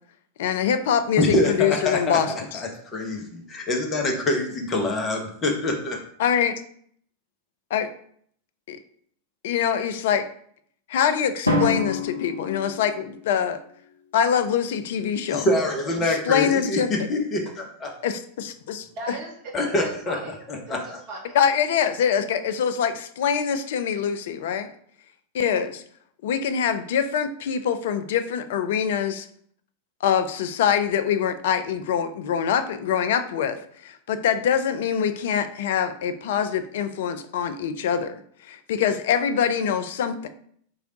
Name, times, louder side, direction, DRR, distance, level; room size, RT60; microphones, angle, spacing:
voice 1, 0.4-2.6 6.2-6.5 7.7-7.9 8.7-8.8 9.4-10.3 10.9-13.6 14.1-15.5 16.0-16.9 18.0-19.2 21.3-24.7 25.3-25.8 26.2-29.3 30.0-38.2 38.5-40.3, left 8 dB, 55° left, 9 dB, 0.3 m, -24 dB
voice 2, 1.2-2.2 2.5-6.0 15.3-17.9 19.5-20.2 20.5-21.0, left 2 dB, 25° left, 2 dB, 0.8 m, -25 dB
Drum, 11.5-13.5, left 2 dB, 85° left, 0.6 m, -27 dB
voice 3, 18.6-21.4, right 2 dB, 45° right, 0 dB, 1.1 m, -38 dB
3.3 x 2.4 x 3.7 m, 0.63 s
figure-of-eight pair, 90°, 0 cm